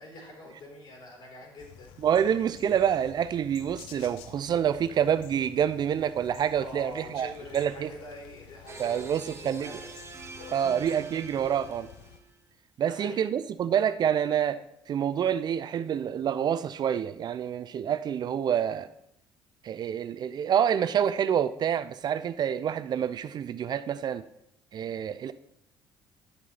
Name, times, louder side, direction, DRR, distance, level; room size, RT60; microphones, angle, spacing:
voice 1, 0.0-1.9 6.6-9.9 12.8-13.2, left 1 dB, 55° left, 4.0 m, -45 dB
sound 1, 1.6-12.2, left 9 dB, 80° left, 0.7 m, -51 dB
voice 2, 2.0-7.9 8.8-9.7 10.5-11.9 12.8-14.6 14.9-18.9 19.6-24.2 24.7-25.3, right 9 dB, 50° right, 0.4 m, -27 dB
sound 2, 8.7-12.4, right 4 dB, 30° right, 1.1 m, -45 dB
9.7 x 7.4 x 4.1 m
supercardioid pair, 70°, 9 cm